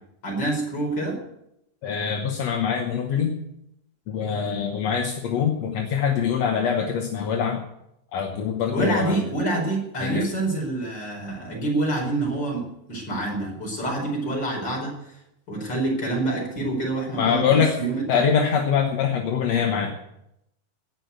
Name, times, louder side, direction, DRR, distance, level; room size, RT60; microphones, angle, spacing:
voice 1, 0.2-1.2 8.7-14.9 15.5-18.2, right 2 dB, 30° left, -1 dB, 5.1 m, -27 dB
voice 2, 1.8-3.3 4.1-7.6 8.1-9.2 10.0-10.3 17.2-17.8 18.1-19.9, left 7 dB, 60° left, 2 dB, 2.0 m, -24 dB
17.5 x 6.0 x 8.1 m, 0.81 s
omnidirectional pair, 4.1 m